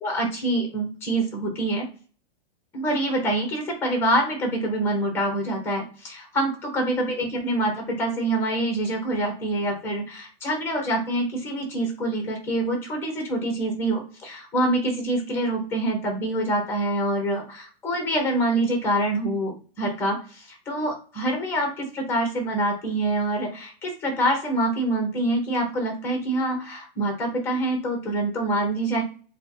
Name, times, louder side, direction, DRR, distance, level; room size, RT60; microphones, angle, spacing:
voice 1, 0.0-1.9 2.7-29.0, right 1 dB, 10° left, 3 dB, 0.8 m, -26 dB
4.3 x 2.2 x 2.8 m, 0.38 s
supercardioid pair, 175°, 30 cm